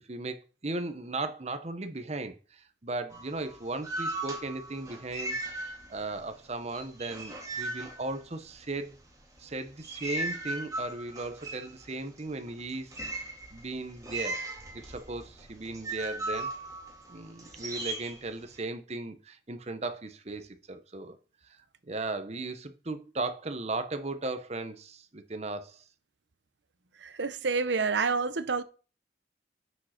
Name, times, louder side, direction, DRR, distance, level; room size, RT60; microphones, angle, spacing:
voice 1, 0.1-8.9 9.4-12.9 13.5-14.4 14.7-16.5 17.1-21.2 21.9-25.8, right 2 dB, 35° right, 0.9 m, -37 dB
sound 1, 3.1-6.2 6.5-8.7 9.4-18.6, right 2 dB, 20° right, 1.9 m, -38 dB
voice 2, 27.0-28.6, right 4 dB, 75° right, 0.7 m, -28 dB
6.5 x 5.1 x 5.9 m
head